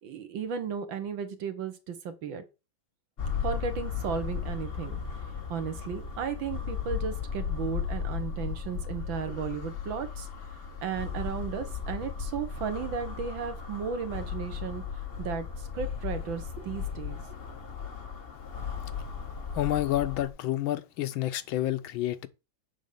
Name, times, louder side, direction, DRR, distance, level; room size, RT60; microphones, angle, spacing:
voice 1, 0.0-2.4 3.4-5.0 5.5-10.3 10.8-14.8 15.2-17.2, right 7 dB, 75° right, 1.9 m, -35 dB
sound 1, 3.2-20.3, left 7 dB, 40° left, 1.0 m, -36 dB
voice 2, 19.6-22.3, left 14 dB, 85° left, 1.5 m, -29 dB
8.1 x 3.9 x 6.7 m
omnidirectional pair, 2.2 m